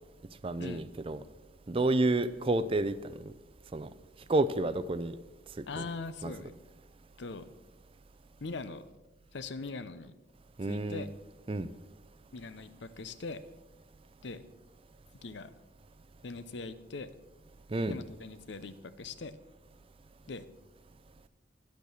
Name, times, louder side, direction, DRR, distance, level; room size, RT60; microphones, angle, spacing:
voice 1, 0.4-1.2 1.7-3.3 3.7-3.9 4.3-5.1 5.8-5.9 6.2-6.3 10.6-11.1 11.5-11.7 17.7-18.0, right 2 dB, 30° right, 0.4 m, -30 dB
voice 2, 5.7-6.5 7.2-7.5 8.4-8.8 9.3-10.1 10.7-11.1 12.3-13.4 14.2-14.4 15.2-15.5 16.2-17.1 17.9-19.3 20.3-20.4, left 3 dB, 70° left, 0.7 m, -41 dB
10.5 x 8.3 x 6.3 m
head